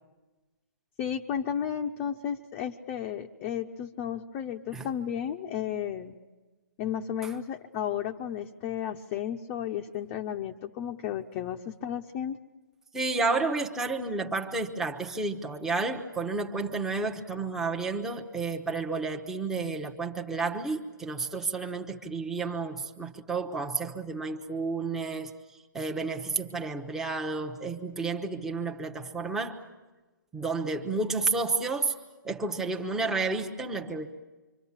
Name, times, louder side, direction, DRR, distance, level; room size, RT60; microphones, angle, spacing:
voice 1, 1.0-6.2 6.8-12.4, left 9 dB, 25° left, 0.8 m, -33 dB
voice 2, 12.9-25.3 25.7-29.6 30.3-32.0 32.2-34.1, right 3 dB, 5° right, 1.1 m, -31 dB
26.0 x 25.0 x 7.4 m
hypercardioid pair, 150°, 11 cm